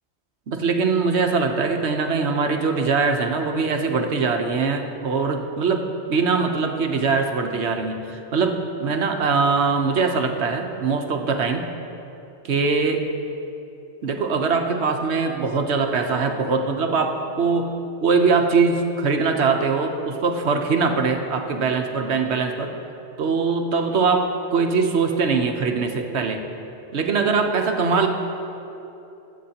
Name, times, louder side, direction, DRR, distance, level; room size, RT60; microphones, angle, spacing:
voice 1, 0.5-5.8 6.1-11.7 12.4-13.0 14.0-17.7 18.0-22.7 23.2-26.4 26.9-28.1, right 4 dB, 70° right, 4 dB, 1.1 m, -22 dB
20.5 x 8.5 x 2.9 m, 2.9 s
omnidirectional pair, 1.2 m